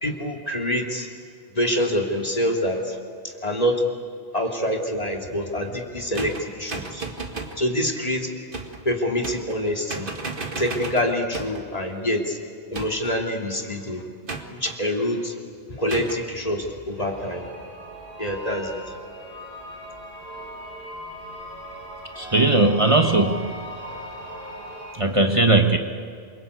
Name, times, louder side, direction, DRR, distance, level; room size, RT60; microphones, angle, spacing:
voice 1, 0.0-1.1 1.5-3.0 3.2-3.8 4.3-7.0 7.6-8.3 8.8-10.1 10.6-12.4 12.7-14.0 14.5-15.3 15.7-17.4 18.2-18.8, equal, 40° left, 1 dB, 3.1 m, -26 dB
sound 1, 6.1-7.6 8.5-8.8 9.2-9.6 9.9-11.7 12.7-13.2 14.3-14.8 15.9-16.2, right 3 dB, 55° right, 2.2 m, -34 dB
sound 2, 17.0-25.0, equal, 90° right, 7.1 m, -39 dB
voice 2, 22.1-23.8 24.9-25.8, right 2 dB, 30° right, 3 dB, 1.5 m, -19 dB
27.5 x 24.5 x 8.3 m, 2.3 s
omnidirectional pair, 1.1 m